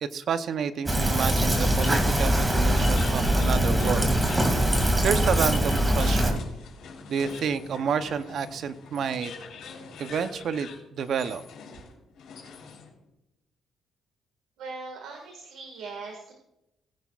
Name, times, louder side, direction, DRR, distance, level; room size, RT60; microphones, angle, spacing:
voice 1, 0.0-4.1 5.0-6.5 7.1-9.3 10.0-11.4, right 7 dB, 65° right, 11 dB, 0.7 m, -29 dB
Fill (with liquid), 0.9-6.3, right 1 dB, 15° right, 2.3 m, -23 dB
sound 1, 1.7-13.0, left 5 dB, 75° left, 3.8 m, -44 dB
voice 2, 14.6-16.3, right 4 dB, 85° right, 2 dB, 1.8 m, -40 dB
19.5 x 10.5 x 2.4 m, 0.88 s
cardioid pair, 90°, 0 cm